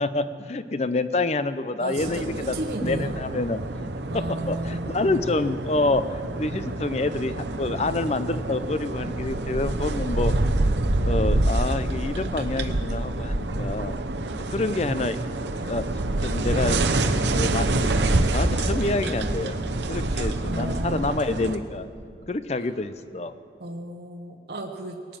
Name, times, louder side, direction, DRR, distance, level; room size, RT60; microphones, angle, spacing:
voice 1, 0.0-3.6 4.1-10.3 11.0-14.0 14.5-15.2 15.6-15.8 16.2-16.8 17.3-19.6 19.9-21.9 22.3-23.3, left 2 dB, 35° left, 13 dB, 0.5 m, -27 dB
voice 2, 1.8-3.1 4.1-5.2 20.4-21.2 23.6-25.0, right 1 dB, 65° right, 2 dB, 1.1 m, -33 dB
sound 1, 2.0-21.6, right 2 dB, 90° right, 0.9 m, -27 dB
19.0 x 9.2 x 7.4 m, 2.3 s
head